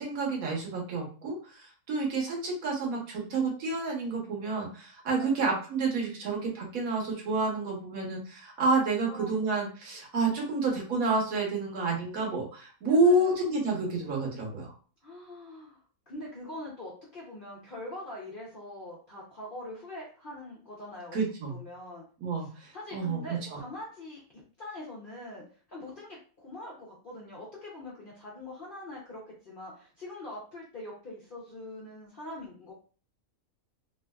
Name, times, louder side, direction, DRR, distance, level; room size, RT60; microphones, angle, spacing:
voice 1, 0.0-14.7 21.1-21.6 22.2-23.2 23.5-23.6, right 3 dB, 65° right, -1 dB, 1.3 m, -29 dB
voice 2, 9.1-9.4 12.8-13.4 15.0-21.2 21.5-22.0 22.4-32.7, left 1 dB, 50° left, -4 dB, 0.6 m, -43 dB
3.1 x 2.4 x 2.2 m, 0.39 s
omnidirectional pair, 1.6 m